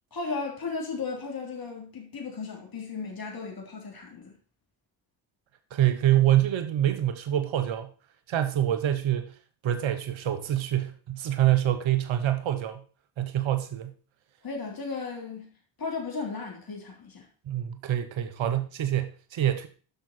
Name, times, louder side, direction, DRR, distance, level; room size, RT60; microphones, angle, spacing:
voice 1, 0.1-4.4 14.4-17.3, left 4 dB, 45° left, 3.3 m, -35 dB
voice 2, 5.7-7.9 8.3-9.4 9.6-12.8 13.2-13.9 17.4-19.7, right 12 dB, 70° right, 1.2 m, -26 dB
8.9 x 6.1 x 4.4 m
supercardioid pair, 50°, 49 cm